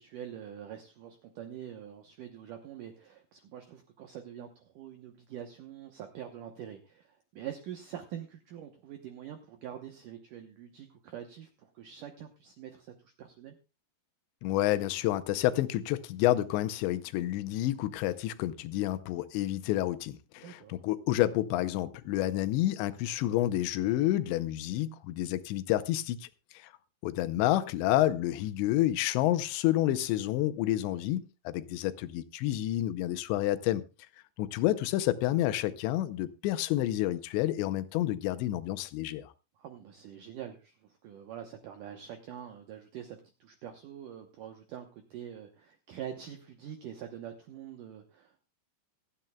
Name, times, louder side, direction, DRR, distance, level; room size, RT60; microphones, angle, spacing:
voice 1, 0.0-13.6 20.4-20.8 39.6-48.4, right 10 dB, 80° right, 1.8 m, -45 dB
voice 2, 14.4-26.3 26.5-26.7 27.0-33.8 34.4-39.3, left 14 dB, 85° left, 2.9 m, -29 dB
26.0 x 9.0 x 2.2 m
omnidirectional pair, 5.1 m